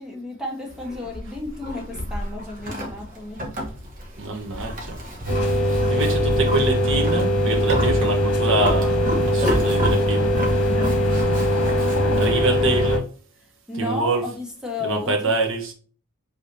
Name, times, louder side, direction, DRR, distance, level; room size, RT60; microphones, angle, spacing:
voice 1, 0.0-3.5 5.3-6.1 10.6-12.6 13.7-15.3, left 2 dB, 5° right, 1.3 m, -34 dB
Livestock farm animals working animals, 0.7-12.3, equal, 40° right, 1.3 m, -31 dB
voice 2, 4.2-5.0 5.9-10.3 12.2-13.0 13.8-14.2 14.8-15.7, right 2 dB, 60° right, 1.0 m, -25 dB
sound 1, 5.3-13.0, equal, 75° left, 1.2 m, -21 dB
5.0 x 3.5 x 2.8 m
head